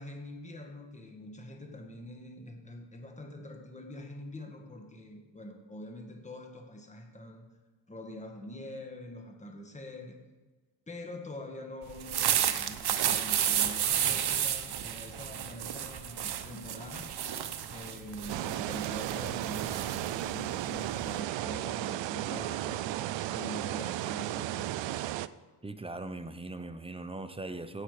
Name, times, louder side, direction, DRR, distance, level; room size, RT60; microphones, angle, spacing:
voice 1, 0.0-7.5 7.9-10.2 10.9-17.2 17.6-23.0 23.3-25.1, left 1 dB, 15° left, 3 dB, 1.6 m, -44 dB
sound 1, 11.9-21.2, right 10 dB, 60° right, 0.9 m, -32 dB
sound 2, 18.3-25.3, right 14 dB, 80° right, 0.5 m, -34 dB
voice 2, 25.6-27.8, right 2 dB, 15° right, 10 dB, 0.7 m, -40 dB
16.5 x 5.6 x 4.9 m, 1.3 s
cardioid pair, 85°, 44 cm